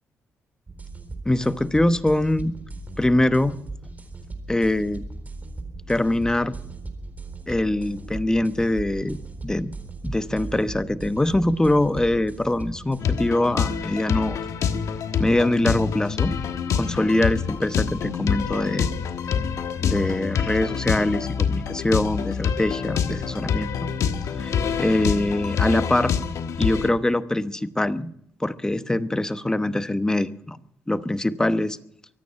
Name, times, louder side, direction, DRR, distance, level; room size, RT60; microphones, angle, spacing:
sound 1, 0.7-13.0, right 3 dB, 30° right, 4.0 m, -38 dB
voice 1, 1.2-2.6 3.0-3.6 4.5-5.0 5.9-6.6 7.5-9.8 10.0-14.4 15.2-16.3 16.8-18.9 19.8-23.9 24.4-26.1 26.6-28.1 28.4-30.6 30.9-31.8, left 1 dB, 10° left, 12 dB, 1.0 m, -23 dB
sound 2, 13.0-26.9, left 7 dB, 70° left, 1.3 m, -26 dB
24.0 x 9.4 x 5.7 m, 0.67 s
cardioid pair, 80°, 6 cm